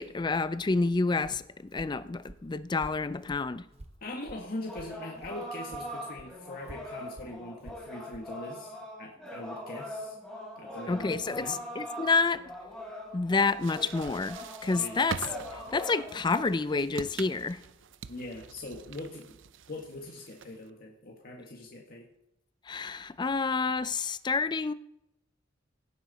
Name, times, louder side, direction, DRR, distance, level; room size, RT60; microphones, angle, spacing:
voice 1, 0.0-3.6 10.9-12.4 13.1-15.2 15.7-17.6 22.7-24.7, left 4 dB, 25° left, 0.4 m, -29 dB
Walk footsteps, 0.7-5.4 5.7-8.3, right 1 dB, 35° right, 0.7 m, -51 dB
voice 2, 4.0-10.2 10.5-11.6 14.7-15.0 18.1-19.4 19.7-22.1, left 2 dB, 50° left, 1.8 m, -42 dB
sound 1, 4.7-16.4, equal, 5° left, 4.2 m, -42 dB
sound 2, 13.4-20.7, right 6 dB, 70° right, 0.5 m, -44 dB
16.5 x 9.2 x 4.1 m
head